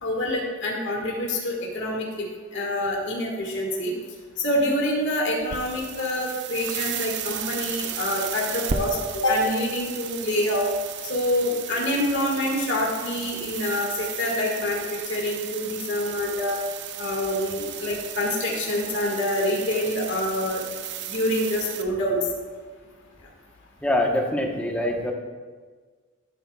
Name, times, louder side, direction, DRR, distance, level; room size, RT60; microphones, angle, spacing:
voice 1, 0.0-3.9 4.4-10.7 11.0-16.6 17.0-20.6 21.1-22.2, left 1 dB, 60° left, -2 dB, 1.9 m, -26 dB
sound 1, 5.4-21.8, right 8 dB, 55° right, 0.6 m, -35 dB
voice 2, 23.8-25.1, left 1 dB, 5° left, 1 dB, 1.1 m, -24 dB
12.5 x 11.5 x 2.4 m, 1.5 s
head